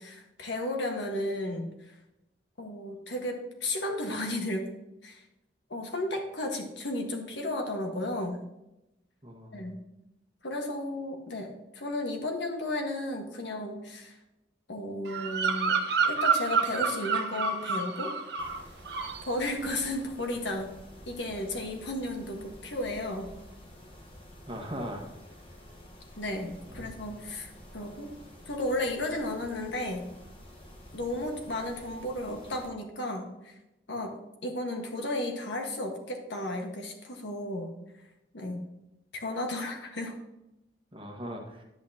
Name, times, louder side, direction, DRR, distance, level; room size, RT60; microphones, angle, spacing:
voice 1, 0.0-1.9 2.6-4.7 5.0-5.2 5.7-8.4 9.5-9.8 10.4-14.2 14.7-18.1 19.2-20.7 21.1-23.3 26.2-28.1 28.5-30.1 30.9-33.5 33.9-37.8 38.3-38.7 39.1-40.1, left 1 dB, 85° left, 2 dB, 1.4 m, -34 dB
voice 2, 9.2-9.7 24.5-25.1 26.7-27.0 40.9-41.6, equal, 30° right, 1 dB, 1.4 m, -39 dB
Bird vocalization bird call bird song, 15.1-18.6 18.9-19.3, right 5 dB, 70° right, 0.9 m, -28 dB
Mechanisms, 18.4-32.7, equal, 30° left, 1.2 m, -50 dB
10.5 x 8.4 x 2.8 m, 0.90 s
head